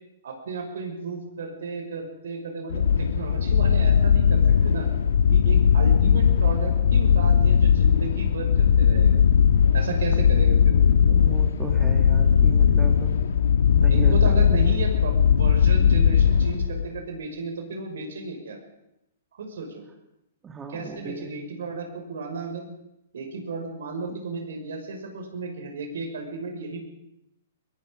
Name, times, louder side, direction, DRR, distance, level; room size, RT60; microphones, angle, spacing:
voice 1, 0.2-4.9 5.3-9.2 9.7-11.2 13.9-18.6 19.3-19.8 20.7-22.7 23.1-26.8, right 4 dB, 65° right, 3 dB, 6.1 m, -34 dB
sound 1, 2.7-17.0, left 7 dB, 65° left, 1.6 m, -19 dB
voice 2, 10.9-13.1 13.8-14.5 20.4-21.3 24.1-24.2, right 4 dB, 15° right, 3 dB, 2.6 m, -37 dB
23.5 x 22.0 x 5.4 m, 0.85 s
figure-of-eight pair, 115°, 0 cm